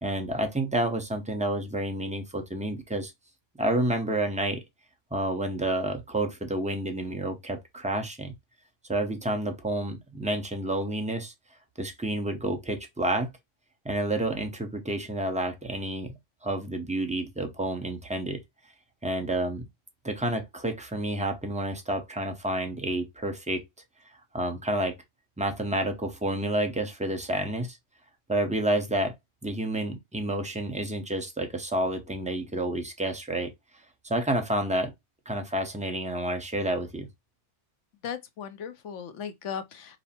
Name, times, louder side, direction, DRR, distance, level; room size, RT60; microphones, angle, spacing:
voice 1, 0.0-3.1 3.6-4.6 5.1-8.3 8.9-11.3 11.8-13.3 13.8-16.1 16.4-18.4 19.0-19.6 20.0-23.6 24.3-24.9 25.4-27.8 28.3-29.1 29.4-33.5 34.0-34.9 35.3-37.1, right 1 dB, 5° right, 0.7 m, -29 dB
voice 2, 38.0-40.0, left 7 dB, 75° left, 1.1 m, -37 dB
5.4 x 2.0 x 4.2 m
omnidirectional pair, 1.3 m